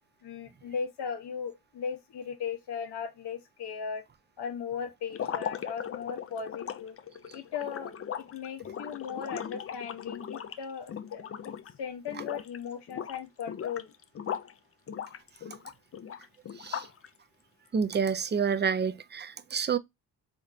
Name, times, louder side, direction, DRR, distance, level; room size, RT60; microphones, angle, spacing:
voice 1, 0.2-4.0 4.4-7.0 7.3-11.5 11.8-13.9, left 6 dB, 75° left, 1.2 m, -37 dB
sound 1, 5.1-11.8 12.1-12.6 12.9-14.5 14.9-17.1, left 8 dB, 35° left, 0.4 m, -38 dB
voice 2, 17.7-19.8, right 6 dB, 25° right, 0.5 m, -28 dB
3.6 x 3.6 x 2.6 m
cardioid pair, 80°, 41 cm